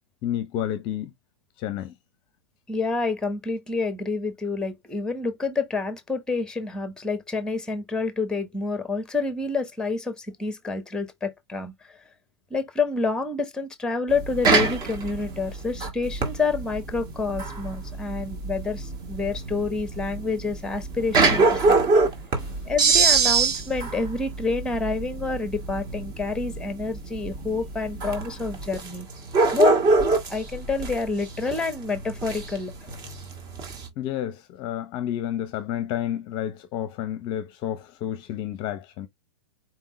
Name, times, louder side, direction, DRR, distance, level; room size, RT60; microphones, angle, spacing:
voice 1, 0.2-1.1 1.6-1.9 22.3-22.5 34.0-39.1, left 11 dB, 35° left, 0.8 m, -30 dB
voice 2, 2.7-12.0 12.5-21.8 22.7-29.1 29.5-29.8 30.3-32.7, left 4 dB, 5° left, 1.1 m, -28 dB
sound 1, 14.1-33.9, right 4 dB, 30° right, 1.9 m, -25 dB
4.7 x 3.6 x 3.2 m
hypercardioid pair, 125°, 15 cm